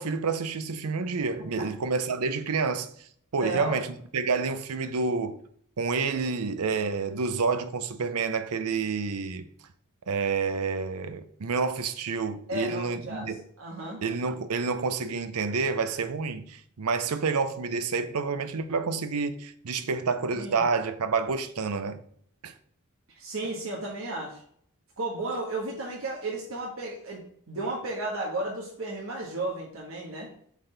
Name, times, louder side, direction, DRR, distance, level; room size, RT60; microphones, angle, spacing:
voice 1, 0.0-2.9 3.3-5.4 5.8-9.4 10.1-13.4 14.0-22.0 22.4-22.5, right 4 dB, 90° right, 0.6 m, -29 dB
voice 2, 3.4-3.8 12.5-13.3 13.6-14.0 20.3-20.7 23.2-24.4 25.0-27.2 27.5-30.3, right 2 dB, 65° right, 1.4 m, -33 dB
8.1 x 4.1 x 3.3 m
head